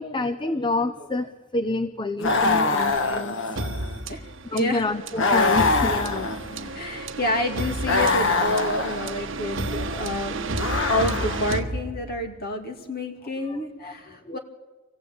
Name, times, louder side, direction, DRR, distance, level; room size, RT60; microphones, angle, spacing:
voice 1, 0.0-3.6 4.5-6.4 9.9-10.1 13.8-13.9 14.3-14.4, left 2 dB, 25° left, 8 dB, 0.6 m, -28 dB
sound 1, 2.2-4.0 5.2-6.7 7.8-9.2 10.5-11.6, left 3 dB, 65° left, 1.3 m, -24 dB
sound 2, 3.6-12.4, right 2 dB, 65° right, 1.3 m, -32 dB
voice 2, 4.1-4.9 6.7-10.5 10.9-14.4, left 1 dB, 50° left, 3 dB, 2.6 m, -29 dB
24.5 x 15.5 x 8.6 m, 1.3 s
head